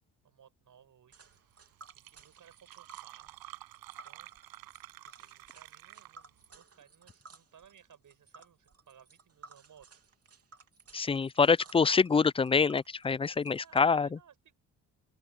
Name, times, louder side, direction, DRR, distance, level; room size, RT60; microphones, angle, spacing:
voice 1, 0.2-1.3 1.9-3.4 4.0-4.3 5.0-9.9 13.6-14.5, right 8 dB, 60° right, 6.9 m, -59 dB
Tick, 1.1-13.8, right 4 dB, 45° right, 3.0 m, -57 dB
Fill (with liquid), 1.3-1.4 1.7-6.4, right 16 dB, 85° right, 7.3 m, -50 dB
voice 2, 10.9-14.1, left 5 dB, 15° left, 0.3 m, -25 dB
open air
supercardioid pair, 65°, 35 cm